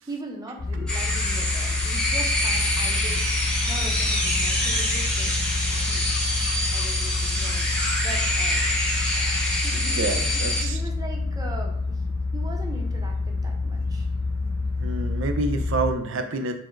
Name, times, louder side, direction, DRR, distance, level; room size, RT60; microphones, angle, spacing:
voice 1, 0.1-3.2 3.7-5.4 5.9-6.1 6.7-8.6 9.6-12.0 12.3-14.1, right 2 dB, 20° right, 1 dB, 0.6 m, -40 dB
sound 1, 0.6-15.9, left 3 dB, 50° left, 0.4 m, -28 dB
sound 2, 0.9-10.6, left 1 dB, 5° left, 0.9 m, -26 dB
voice 2, 9.7-10.8 14.8-16.5, right 2 dB, 65° right, 7 dB, 0.5 m, -28 dB
4.4 x 2.0 x 4.4 m, 0.68 s
head